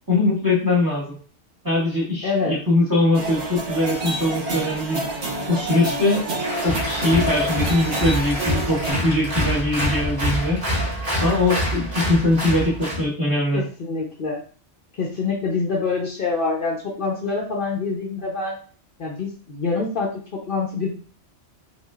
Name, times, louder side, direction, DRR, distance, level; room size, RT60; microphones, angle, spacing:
voice 1, 0.1-1.1 1.6-5.0 5.5-6.2 6.6-10.6 11.2-13.6, left 2 dB, 20° right, -6 dB, 1.3 m, -21 dB
voice 2, 2.2-2.6 13.5-14.4 15.0-18.6 19.0-20.9, left 4 dB, 50° left, -4 dB, 0.9 m, -25 dB
sound 1, 3.1-8.9, right 1 dB, 75° right, 1.5 m, -28 dB
Applause, 6.4-13.0, equal, 35° right, 2.1 m, -25 dB
5.1 x 2.5 x 2.4 m, 0.40 s
omnidirectional pair, 1.2 m